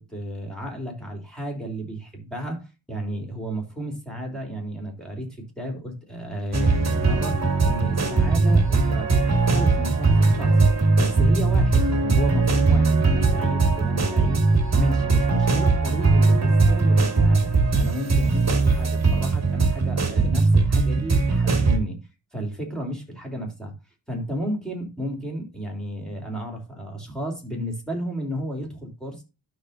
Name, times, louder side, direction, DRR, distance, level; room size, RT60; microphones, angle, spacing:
voice 1, 0.0-10.6 10.9-14.5 14.7-22.0 22.3-23.7 24.1-29.2, equal, ahead, 3.4 m, -33 dB
sound 1, 6.5-21.8, right 3 dB, 35° right, 1.8 m, -20 dB
12.0 x 6.2 x 2.6 m
wide cardioid pair, 150°, 46 cm